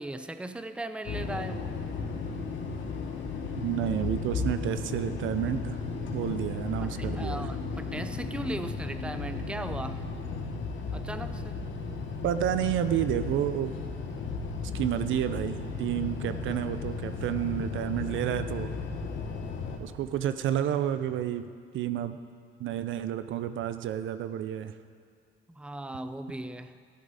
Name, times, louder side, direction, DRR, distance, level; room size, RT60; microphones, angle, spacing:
voice 1, 0.0-1.8 6.8-10.1 10.9-11.7 25.5-26.8, right 1 dB, 5° right, 10 dB, 0.5 m, -38 dB
sound 1, 1.1-19.8, left 4 dB, 70° left, 1.5 m, -35 dB
voice 2, 3.6-5.8 6.1-7.5 12.2-13.8 14.7-18.7 19.8-22.2 22.6-24.7, right 10 dB, 75° right, 11 dB, 0.6 m, -30 dB
14.0 x 11.0 x 4.1 m, 2.1 s
cardioid pair, 90°, 20 cm